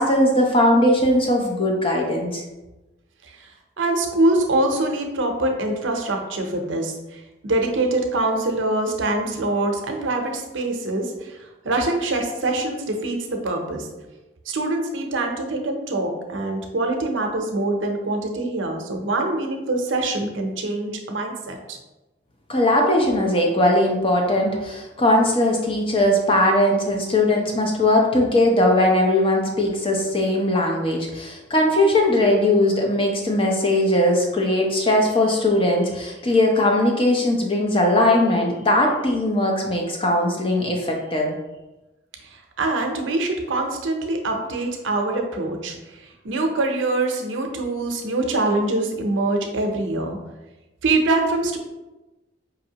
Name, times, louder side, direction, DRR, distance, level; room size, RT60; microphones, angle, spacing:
voice 1, 0.0-2.4 22.5-41.4, left 1 dB, 25° left, 0 dB, 0.6 m, -19 dB
voice 2, 3.8-11.4 11.6-13.9 14.5-21.8 42.6-50.2 50.8-51.6, right 2 dB, 75° right, 3 dB, 0.6 m, -24 dB
5.2 x 2.6 x 2.8 m, 1.0 s
head